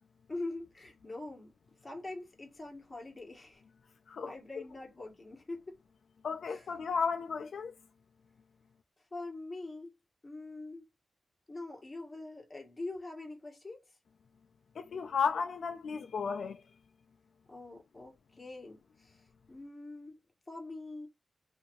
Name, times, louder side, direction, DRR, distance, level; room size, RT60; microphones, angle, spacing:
voice 1, 0.3-1.5 1.8-3.6 4.2-5.8 6.5-6.7 9.1-9.9 10.2-10.9 11.5-13.9 17.5-20.2 20.5-21.1, left 2 dB, 25° left, 1.4 m, -44 dB
voice 2, 6.2-7.8 14.8-16.6, left 5 dB, 75° left, 0.3 m, -34 dB
2.7 x 2.6 x 2.9 m
wide cardioid pair, 115°, 0 cm